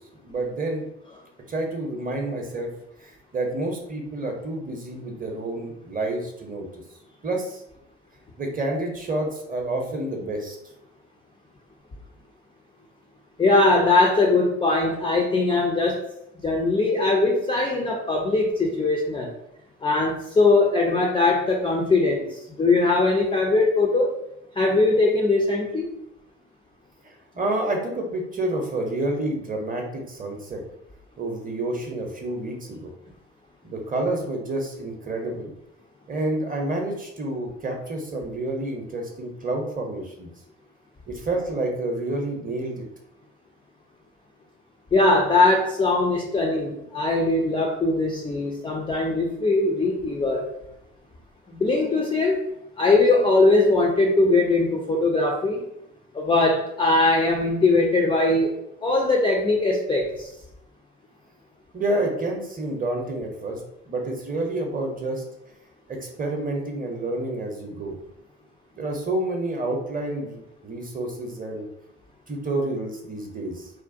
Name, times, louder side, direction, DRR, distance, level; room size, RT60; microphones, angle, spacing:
voice 1, 0.2-0.8 1.5-2.7 3.0-6.7 7.2-7.6 8.4-10.6 27.0-30.6 31.2-32.9 33.6-35.5 36.1-40.3 41.1-42.8 61.7-65.2 65.9-68.0 68.8-71.7 72.3-73.7, right 2 dB, 25° right, 2 dB, 0.7 m, -29 dB
voice 2, 13.4-16.1 16.4-19.3 19.8-24.2 24.6-25.9 44.9-50.5 51.5-52.4 52.8-55.6 56.1-58.5 58.8-60.3, left 2 dB, 15° left, -1 dB, 0.3 m, -21 dB
2.5 x 2.1 x 2.5 m, 0.81 s
hypercardioid pair, 50°, 35 cm